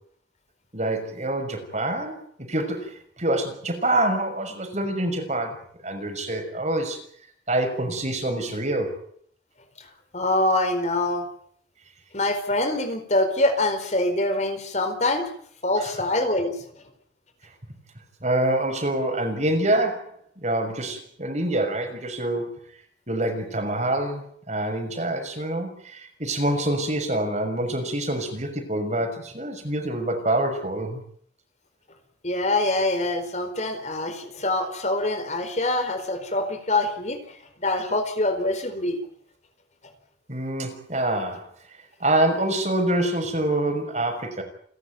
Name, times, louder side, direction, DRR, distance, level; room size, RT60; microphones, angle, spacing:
voice 1, 0.7-2.1 2.5-5.6 5.8-7.0 7.5-9.0 15.8-15.9 18.2-22.6 23.1-31.0 40.3-41.4 42.0-44.4, right 1 dB, 40° right, 5 dB, 6.2 m, -26 dB
voice 2, 10.1-11.2 12.1-15.2 15.6-16.6 32.2-39.0, left 2 dB, 40° left, 8 dB, 4.4 m, -24 dB
29.5 x 13.0 x 9.2 m, 0.63 s
head